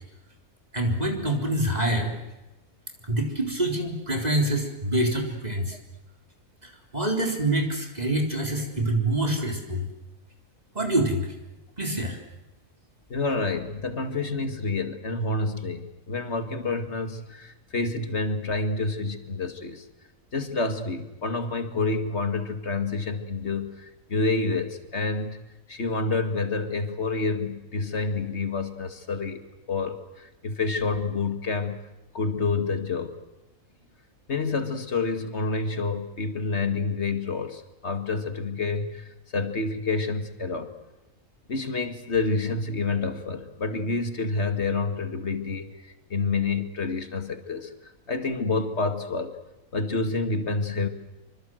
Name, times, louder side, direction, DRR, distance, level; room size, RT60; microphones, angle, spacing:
voice 1, 0.7-2.1 3.1-5.8 6.6-9.8 10.7-11.2 11.8-12.2, right 1 dB, 30° right, 2 dB, 4.2 m, -26 dB
voice 2, 13.1-19.8 20.3-25.4 25.7-29.4 29.7-31.8 32.1-33.2 34.3-39.0 39.3-40.7 41.5-45.7 46.1-47.7 48.1-49.3 49.7-50.9, left 3 dB, 50° left, 7 dB, 2.4 m, -28 dB
26.0 x 25.5 x 7.8 m, 1.0 s
omnidirectional pair, 1.5 m